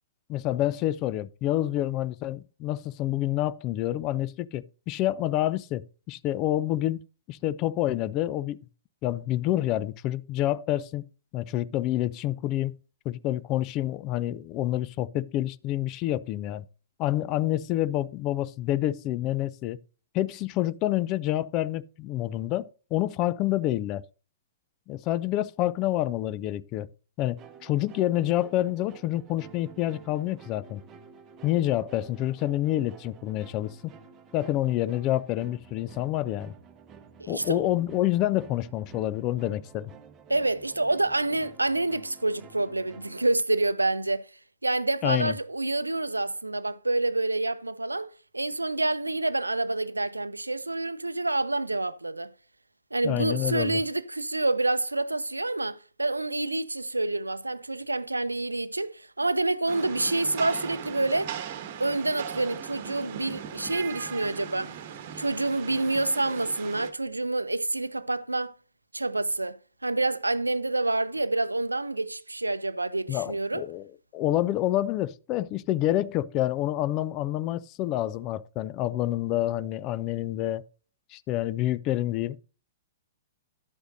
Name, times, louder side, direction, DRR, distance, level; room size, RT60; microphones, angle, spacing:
voice 1, 0.3-7.0 7.3-8.6 9.0-11.1 11.3-12.8 13.1-16.7 17.0-19.8 20.1-24.0 24.9-26.9 27.2-30.8 31.4-33.7 34.3-36.5 37.3-39.9 45.0-45.3 53.0-53.8 73.1-73.9 74.1-80.6 81.1-82.4, left 14 dB, 30° left, 0.5 m, -28 dB
sound 1, 27.4-43.3, right 6 dB, 20° right, 1.0 m, -51 dB
voice 2, 37.2-37.6 40.3-44.2 44.6-48.1 48.3-52.3 52.9-61.3 61.8-64.7 65.2-68.5 68.9-73.6, right 2 dB, 80° right, 0.5 m, -28 dB
Rain, 59.7-66.9, right 9 dB, 45° right, 1.2 m, -39 dB
11.5 x 8.0 x 2.7 m
figure-of-eight pair, 110°, 0 cm